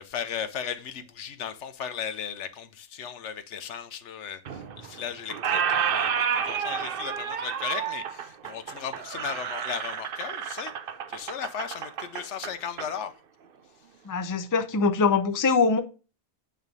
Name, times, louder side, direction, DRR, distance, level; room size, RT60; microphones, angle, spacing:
voice 1, 0.0-10.7 11.1-13.1, left 8 dB, 75° left, 1.1 m, -36 dB
Squeak, 4.4-5.0 5.3-12.9, right 7 dB, 55° right, 0.8 m, -30 dB
voice 2, 14.1-15.8, left 4 dB, 25° left, 0.5 m, -23 dB
8.9 x 3.5 x 5.2 m
omnidirectional pair, 1.2 m